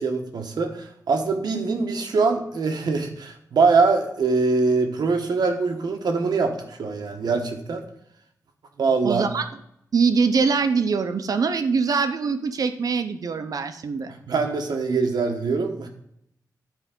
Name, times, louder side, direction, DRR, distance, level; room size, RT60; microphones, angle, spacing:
voice 1, 0.0-7.8 8.8-9.2 14.3-15.9, right 4 dB, 85° right, 4 dB, 1.1 m, -23 dB
voice 2, 9.0-9.4 9.9-14.1, right 5 dB, 60° right, 9 dB, 0.6 m, -23 dB
10.5 x 4.5 x 3.7 m, 0.75 s
wide cardioid pair, 145°, 7 cm